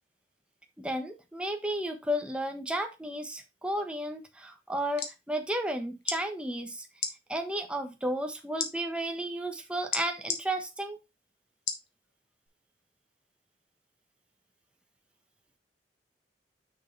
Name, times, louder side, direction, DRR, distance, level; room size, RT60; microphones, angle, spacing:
voice 1, 0.8-6.9 7.3-11.0, right 1 dB, 5° right, 4 dB, 1.2 m, -33 dB
sound 1, 4.7-5.2 6.0-6.2 6.9-7.1 8.6-8.7 9.9-10.4 11.7-11.9 12.5-12.6, left 6 dB, 85° left, 1.6 m, -32 dB
6.5 x 6.4 x 3.3 m, 0.24 s
head